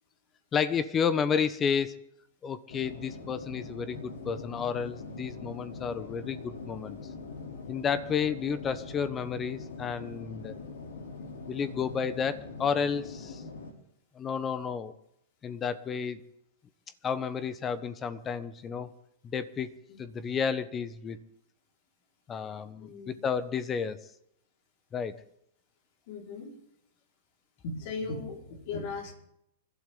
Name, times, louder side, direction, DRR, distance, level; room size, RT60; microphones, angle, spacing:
voice 1, 0.5-2.0 2.4-7.0 7.7-10.5 11.5-13.4 14.2-14.9 15.4-16.2 17.0-18.9 19.3-19.7 20.0-21.2 22.3-24.0 24.9-25.2, left 6 dB, 25° left, 14 dB, 1.2 m, -31 dB
sound 1, 2.7-13.7, left 4 dB, 75° left, 3.5 m, -43 dB
voice 2, 22.8-23.2 26.1-26.6 27.6-29.1, left 3 dB, 55° left, 1 dB, 5.1 m, -38 dB
28.5 x 12.0 x 4.0 m, 0.76 s
hypercardioid pair, 105°, 0 cm